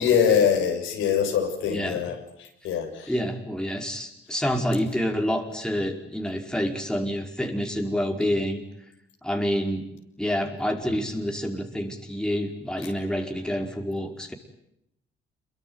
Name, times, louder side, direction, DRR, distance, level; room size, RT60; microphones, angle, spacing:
voice 1, 0.0-3.1, left 8 dB, 85° left, 3 dB, 6.7 m, -24 dB
voice 2, 1.7-2.0 3.1-8.6 9.2-9.9 10.2-14.3, equal, 5° left, 3 dB, 4.8 m, -28 dB
27.0 x 23.0 x 9.5 m, 0.79 s
cardioid pair, 90°, 20 cm